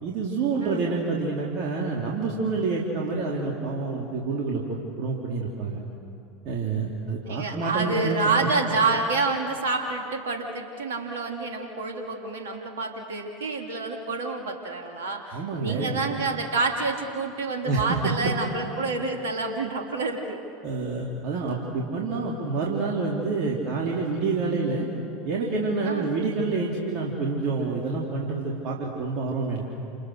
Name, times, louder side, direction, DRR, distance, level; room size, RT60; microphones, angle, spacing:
voice 1, 0.0-5.8 6.4-8.6 15.3-16.0 17.6-18.3 20.6-24.9 25.2-29.6, right 4 dB, 50° right, -3 dB, 3.5 m, -28 dB
voice 2, 7.3-20.4 25.8-26.1, right 3 dB, 70° right, 3 dB, 2.6 m, -28 dB
28.5 x 28.5 x 6.6 m, 2.7 s
figure-of-eight pair, 80°, 0 cm